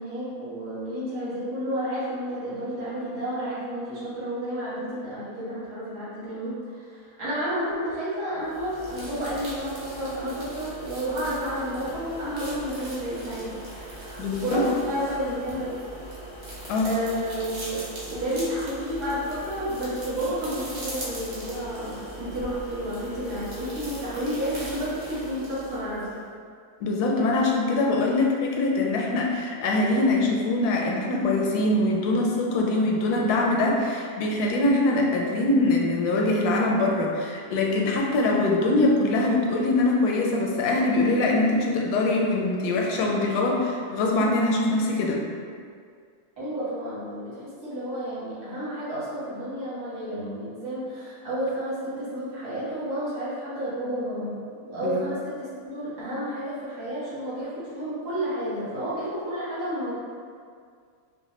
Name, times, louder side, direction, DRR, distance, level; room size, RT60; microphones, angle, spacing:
voice 1, 0.0-15.7 16.8-17.8 18.1-26.1 46.4-54.3 54.6-59.9, equal, 85° right, -12 dB, 2.2 m, -31 dB
sound 1, 8.4-26.2, right 1 dB, 50° right, 1.0 m, -39 dB
voice 2, 14.2-14.6 16.7-16.9 26.8-45.2 54.8-55.0, left 2 dB, 80° left, -1 dB, 1.1 m, -23 dB
4.7 x 2.2 x 3.1 m, 2.2 s
omnidirectional pair, 1.6 m